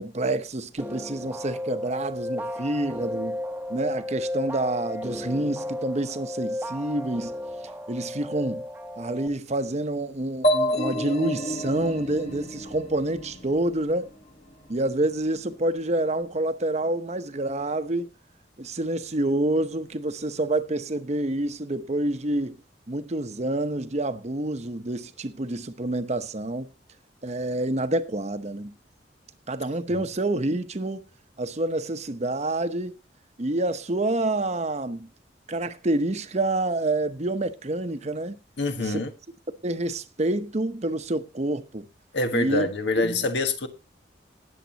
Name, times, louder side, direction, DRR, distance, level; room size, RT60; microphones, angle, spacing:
voice 1, 0.0-3.4 3.7-7.3 7.9-8.6 9.0-14.1 14.7-18.1 18.6-22.6 22.9-26.7 27.2-28.7 29.5-31.0 31.4-32.9 33.4-35.1 35.5-38.4 38.8-39.0 39.6-41.9 42.3-42.7 43.0-43.3, right 2 dB, 40° right, 0.9 m, -28 dB
sound 1, 0.8-9.3, left 1 dB, 10° right, 0.9 m, -33 dB
sound 2, 10.4-14.1, equal, 40° left, 1.8 m, -28 dB
voice 2, 38.6-39.1 42.1-43.7, left 2 dB, 75° left, 1.5 m, -26 dB
18.5 x 7.5 x 2.9 m
head